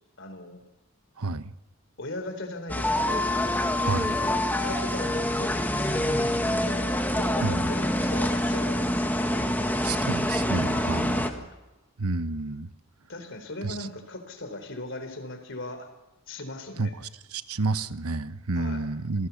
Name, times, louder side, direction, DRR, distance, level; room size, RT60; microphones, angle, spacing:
voice 1, 0.2-0.6 2.0-3.3 4.2-9.9 11.1-11.5 13.1-15.9 16.3-16.9 18.6-18.9, left 2 dB, 55° left, 8 dB, 3.9 m, -39 dB
voice 2, 1.2-1.5 3.8-4.2 7.4-7.7 9.8-11.3 12.0-12.7 13.6-13.9 16.8-19.3, right 3 dB, 90° right, 13 dB, 1.1 m, -30 dB
sound 1, 2.7-11.3, left 1 dB, 10° left, 1.7 m, -26 dB
27.5 x 18.0 x 7.1 m, 1.1 s
head